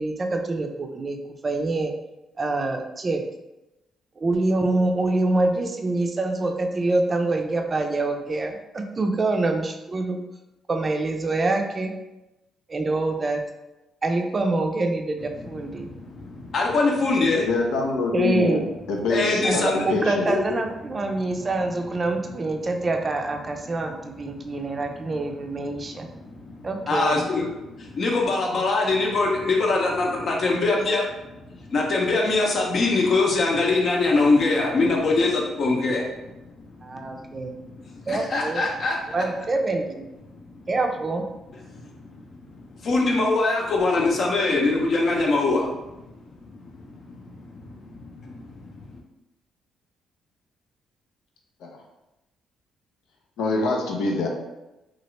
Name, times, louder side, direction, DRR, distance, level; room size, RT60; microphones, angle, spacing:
voice 1, 0.0-1.9 2.4-3.2 4.2-10.2 10.7-11.9 12.7-13.4 14.0-15.9 18.1-18.7 19.4-19.6 19.8-26.1 26.6-27.2 36.8-37.6 38.1-38.6 39.1-40.1 40.7-41.2, right 2 dB, 35° right, 4 dB, 0.4 m, -25 dB
voice 2, 15.5-17.5 19.1-19.7 20.3-20.4 24.5-25.0 25.8-36.0 37.8-39.2 41.7-42.3 42.8-46.0 46.5-48.9, left 3 dB, 50° left, 0 dB, 0.7 m, -24 dB
voice 3, 17.5-18.6 18.9-19.6 19.9-20.2 51.6-51.7 53.4-54.3, left 3 dB, 90° left, 1 dB, 0.6 m, -24 dB
2.9 x 2.4 x 3.1 m, 0.97 s
cardioid pair, 90°, 0 cm